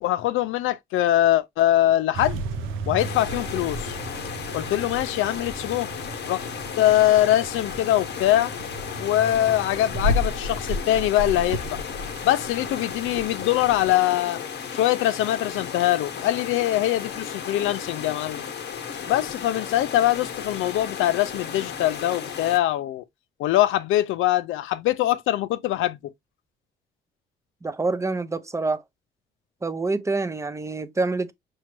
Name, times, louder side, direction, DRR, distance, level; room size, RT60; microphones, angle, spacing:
voice 1, 0.0-2.4 2.9-4.0 4.5-5.9 6.3-6.5 6.8-8.5 9.0-11.8 12.2-14.4 14.7-18.4 19.1-23.0 23.4-26.1, left 13 dB, 85° left, 0.5 m, -23 dB
sound 1, 2.1-13.9, equal, 85° right, 0.7 m, -33 dB
sound 2, 3.0-22.6, left 7 dB, 60° left, 0.9 m, -35 dB
voice 2, 27.6-28.8 29.6-31.3, right 3 dB, 15° right, 0.5 m, -26 dB
6.2 x 2.2 x 2.9 m
cardioid pair, 90°, 20 cm